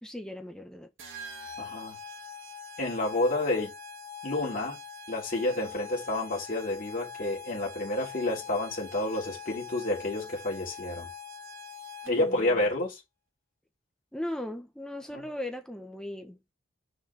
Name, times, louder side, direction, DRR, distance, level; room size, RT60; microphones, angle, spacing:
voice 1, 0.0-0.9 12.0-12.6 14.1-16.4, left 1 dB, 5° left, 1.0 m, -38 dB
sound 1, 1.0-12.4, left 5 dB, 70° right, 2.0 m, -43 dB
voice 2, 1.6-2.0 2.8-3.7 4.2-4.8 5.1-11.1 12.1-13.0 15.1-15.2, left 2 dB, 40° left, 2.9 m, -29 dB
6.3 x 4.7 x 4.8 m
head